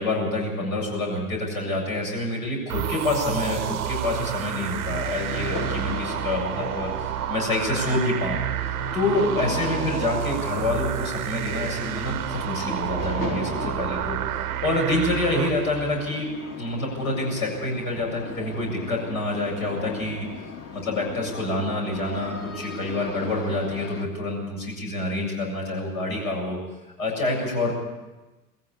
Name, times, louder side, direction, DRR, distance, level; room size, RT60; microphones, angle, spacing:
voice 1, 0.0-8.4 8.6-16.3 16.6-20.3 20.7-26.6 27.0-27.7, left 2 dB, 70° left, 0 dB, 7.5 m, -27 dB
sound 1, 2.7-16.2, right 12 dB, 75° right, 0.8 m, -30 dB
sound 2, 4.5-24.1, left 4 dB, 35° left, 2.2 m, -38 dB
21.5 x 15.0 x 8.6 m, 1.1 s
figure-of-eight pair, 75°, 44 cm